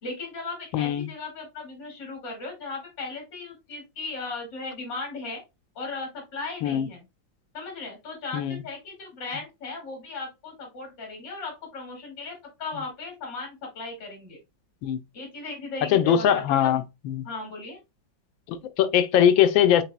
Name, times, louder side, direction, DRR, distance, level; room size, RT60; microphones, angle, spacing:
voice 1, 0.0-5.4 5.7-7.0 7.5-14.4 15.1-16.9 17.2-17.8, left 3 dB, 70° left, 3.0 m, -37 dB
voice 2, 0.7-1.1 6.6-6.9 8.3-8.6 14.8-15.0 15.9-17.2 18.5-19.8, left 9 dB, 85° left, 1.4 m, -21 dB
7.1 x 3.4 x 2.2 m
omnidirectional pair, 2.1 m